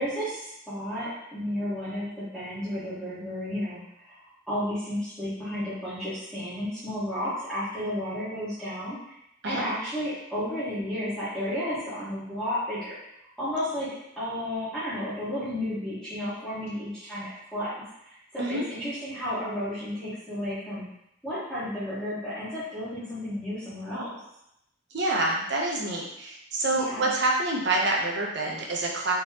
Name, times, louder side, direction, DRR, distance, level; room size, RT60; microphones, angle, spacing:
voice 1, 0.0-9.0 9.4-13.0 13.4-13.9 14.2-17.8 18.0-20.8 21.2-24.1 26.7-27.1, equal, ahead, -15 dB, 1.3 m, -32 dB
voice 2, 24.9-29.1, right 2 dB, 60° right, -2 dB, 0.8 m, -27 dB
3.7 x 3.1 x 2.9 m, 0.79 s
head